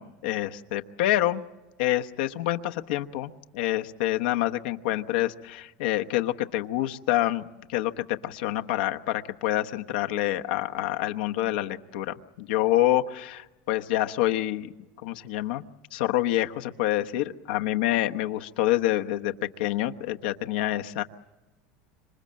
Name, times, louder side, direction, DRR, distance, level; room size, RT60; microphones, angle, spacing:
voice 1, 0.0-1.4 1.8-14.7 15.0-15.6 15.9-19.3 19.6-21.0, left 14 dB, 80° left, 6 dB, 1.0 m, -27 dB
26.5 x 24.0 x 7.6 m, 1.1 s
supercardioid pair, 135°, 5 cm